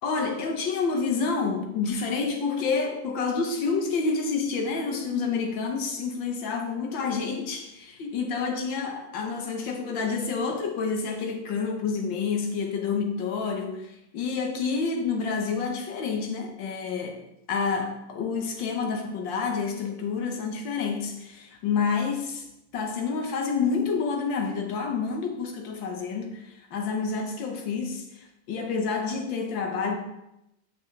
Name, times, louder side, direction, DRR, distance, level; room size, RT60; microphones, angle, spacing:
voice 1, 0.0-17.2 17.5-22.5 22.7-29.9, left 5 dB, 85° left, 3 dB, 1.8 m, -28 dB
9.1 x 6.0 x 3.3 m, 0.86 s
omnidirectional pair, 2.0 m